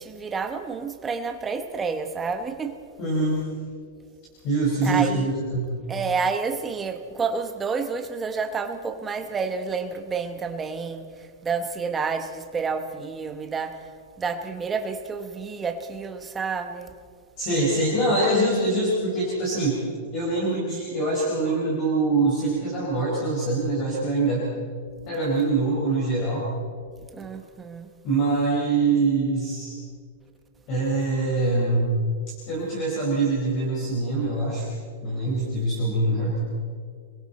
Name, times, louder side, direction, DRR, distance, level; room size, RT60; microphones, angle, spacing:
voice 1, 0.0-2.7 4.8-5.3 5.9-13.8 14.2-16.9 27.1-27.9, right 5 dB, 10° right, 6 dB, 1.0 m, -29 dB
voice 2, 3.0-3.4 4.4-5.7 17.4-19.8 20.1-24.5 25.1-26.5 28.0-29.7 30.7-31.9 32.5-34.7 35.0-36.4, right 2 dB, 30° left, -5 dB, 5.1 m, -24 dB
30.0 x 22.0 x 4.2 m, 2.1 s
supercardioid pair, 180°, 0 cm